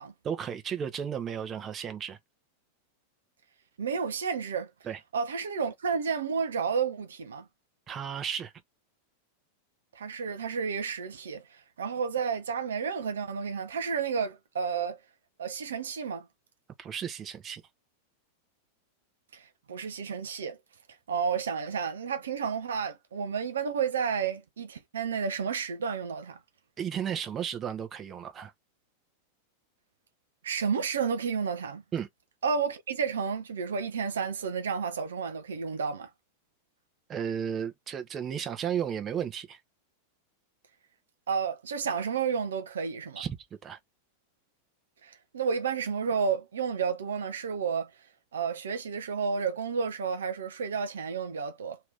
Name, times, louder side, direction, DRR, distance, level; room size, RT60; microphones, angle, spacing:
voice 1, 0.2-2.2 4.8-5.0 7.9-8.5 16.8-17.6 26.8-28.5 31.9-32.1 37.1-39.6 43.2-43.4 43.6-43.8, right 8 dB, 25° right, 0.7 m, -34 dB
voice 2, 3.8-4.7 5.1-7.4 10.0-15.0 15.4-16.2 19.3-20.6 21.1-26.4 30.4-31.8 32.4-36.1 41.3-43.2 45.0-47.9 48.3-51.8, right 6 dB, 65° right, 0.5 m, -31 dB
2.9 x 2.8 x 3.4 m
figure-of-eight pair, 90°, 0 cm